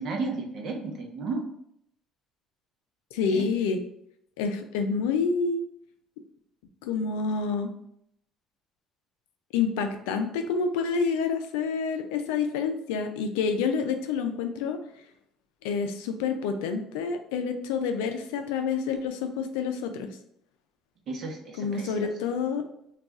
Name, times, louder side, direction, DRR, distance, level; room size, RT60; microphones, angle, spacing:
voice 1, 0.0-1.4 3.3-3.4 21.1-22.1, right 3 dB, 55° right, 2 dB, 0.7 m, -33 dB
voice 2, 3.1-3.8 4.4-5.6 6.8-7.7 9.5-14.8 15.6-20.2 21.6-22.6, left 5 dB, 85° left, 6 dB, 0.3 m, -28 dB
2.3 x 2.3 x 3.9 m, 0.73 s
supercardioid pair, 75°, 0 cm